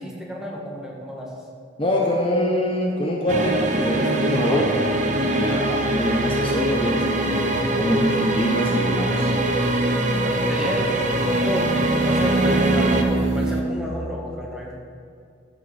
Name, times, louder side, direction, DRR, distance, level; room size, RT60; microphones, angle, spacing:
voice 1, 0.0-1.3 4.4-4.6 5.6-5.8 10.2-11.7 12.0-14.7, equal, 5° right, -2 dB, 1.5 m, -31 dB
voice 2, 1.8-4.7 5.2-9.3, left 1 dB, 30° left, -1 dB, 1.0 m, -24 dB
sound 1, 3.3-13.0, right 1 dB, 40° right, 0.9 m, -22 dB
sound 2, 10.7-13.6, right 3 dB, 65° right, 0.9 m, -25 dB
12.0 x 6.7 x 4.9 m, 2.4 s
head